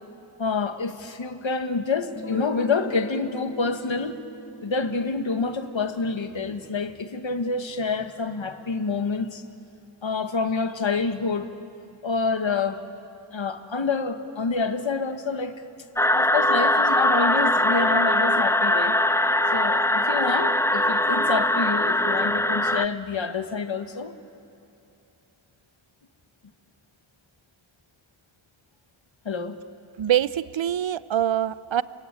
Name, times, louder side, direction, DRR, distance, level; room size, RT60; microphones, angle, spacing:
voice 1, 0.4-4.2 4.6-9.4 10.0-11.5 12.0-12.8 13.3-15.5 16.1-19.0 19.5-24.1 29.2-29.6, left 4 dB, 65° left, 8 dB, 1.5 m, -27 dB
Guitar, 2.2-7.7, equal, 30° left, 2.1 m, -40 dB
sound 1, 16.0-22.9, left 1 dB, 5° left, 0.5 m, -21 dB
voice 2, 30.0-31.8, right 11 dB, 70° right, 17 dB, 0.7 m, -24 dB
29.0 x 23.0 x 8.7 m, 2.7 s
wide cardioid pair, 70°, 48 cm